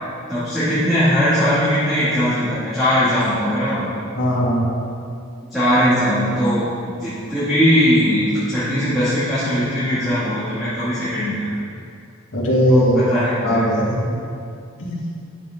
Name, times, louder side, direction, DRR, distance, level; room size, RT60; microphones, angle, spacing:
voice 1, 0.3-3.8 5.5-11.5 12.7-13.6, equal, ahead, -16 dB, 2.2 m, -19 dB
voice 2, 4.2-4.7 12.3-13.1 13.4-14.2 14.8-15.0, equal, 60° left, -6 dB, 2.2 m, -18 dB
10.0 x 7.5 x 3.7 m, 2.4 s
head